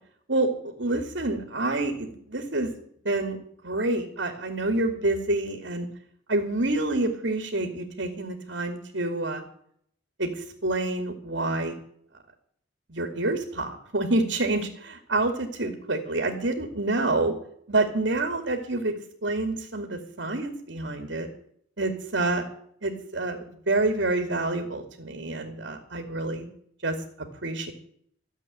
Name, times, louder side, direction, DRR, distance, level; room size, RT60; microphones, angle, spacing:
voice 1, 0.3-2.7 3.0-3.4 3.6-5.9 6.3-9.4 10.2-11.8 12.9-17.3 17.7-18.9 19.2-21.3 21.8-22.5 22.8-26.5 26.8-27.7, right 2 dB, 70° right, 5 dB, 2.5 m, -27 dB
14.0 x 8.0 x 10.0 m, 0.66 s
head